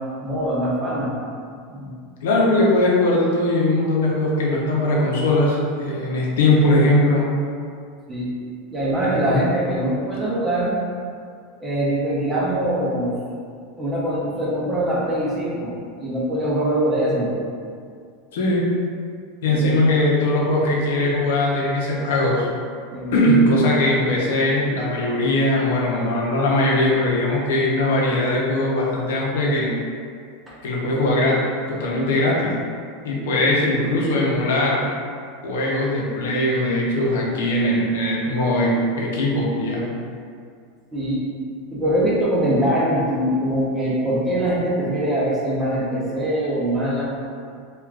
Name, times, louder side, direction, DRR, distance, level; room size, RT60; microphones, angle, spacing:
voice 1, 0.2-1.1 1.7-2.0 8.1-8.3 8.7-10.8 11.6-13.2 13.8-17.3 19.5-19.8 22.9-23.6 30.5-30.6 33.3-33.4 40.9-41.2 41.7-47.1, right 1 dB, 15° right, -6 dB, 0.6 m, -23 dB
voice 2, 2.2-7.2 9.0-9.2 18.3-18.7 19.4-22.5 23.1-29.7 30.6-31.4 31.7-32.5 33.0-34.8 35.4-39.9, left 1 dB, 85° left, -4 dB, 0.6 m, -20 dB
3.3 x 2.3 x 2.4 m, 2.2 s
supercardioid pair, 160°, 0 cm